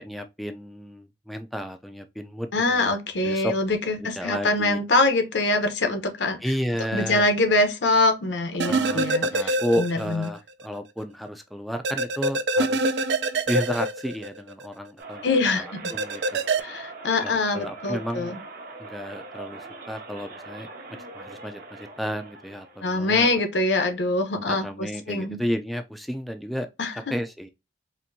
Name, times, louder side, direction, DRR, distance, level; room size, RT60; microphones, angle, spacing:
voice 1, 0.0-2.9 3.2-3.5 4.0-4.8 6.4-7.3 8.6-13.0 13.5-15.2 15.5-16.4 17.2-18.4 18.8-20.7 21.1-23.3 24.4-26.7 27.1-27.5, equal, ahead, 0.3 m, -32 dB
voice 2, 2.5-6.4 6.9-10.2 15.2-15.7 16.6-18.4 22.8-25.4 26.8-26.9, left 2 dB, 85° left, 0.8 m, -24 dB
sound 1, 8.6-10.3 10.6-10.7 11.8-14.7 15.8-16.6, right 2 dB, 75° right, 0.4 m, -25 dB
sound 2, 15.0-23.0, right 3 dB, 55° right, 0.8 m, -42 dB
4.3 x 2.6 x 2.6 m
head